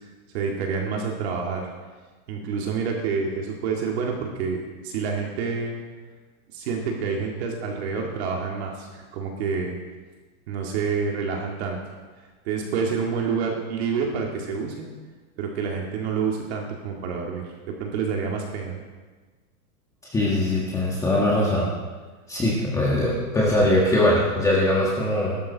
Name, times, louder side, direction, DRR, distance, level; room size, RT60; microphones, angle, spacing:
voice 1, 0.3-1.6 2.3-5.8 6.5-9.8 10.5-11.8 12.4-14.9 15.4-18.8, right 5 dB, 45° right, 0 dB, 2.2 m, -28 dB
voice 2, 20.1-21.7 22.3-25.4, left 1 dB, 5° left, -5 dB, 1.4 m, -21 dB
18.0 x 12.5 x 4.1 m, 1.4 s
supercardioid pair, 170°, 44 cm